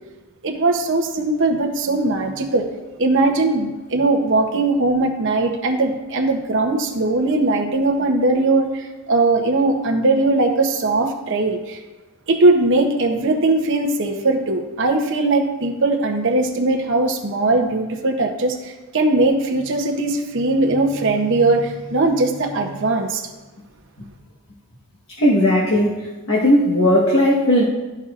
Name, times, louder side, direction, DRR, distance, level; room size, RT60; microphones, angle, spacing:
voice 1, 0.4-2.7 3.0-11.8 12.3-23.2, right 2 dB, 55° right, 3 dB, 0.8 m, -19 dB
voice 2, 25.2-27.6, left 1 dB, 60° left, -4 dB, 1.3 m, -17 dB
12.5 x 5.5 x 2.5 m, 1.2 s
head